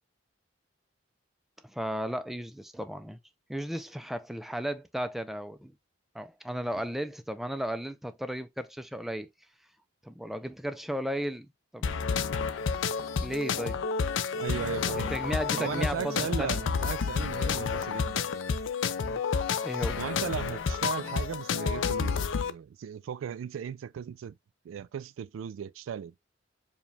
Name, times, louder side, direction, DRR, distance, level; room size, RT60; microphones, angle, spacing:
voice 1, 1.6-3.2 3.5-5.7 6.1-9.3 10.0-11.5 11.7-12.0 13.2-13.8 14.9-16.6 19.0-19.2 19.6-20.0, equal, ahead, 0.3 m, -35 dB
sound 1, 11.8-22.5, left 5 dB, 70° left, 0.4 m, -30 dB
voice 2, 14.4-15.1 15.6-18.3 20.0-24.4 24.6-26.1, right 7 dB, 80° right, 0.3 m, -36 dB
4.9 x 2.2 x 3.2 m
head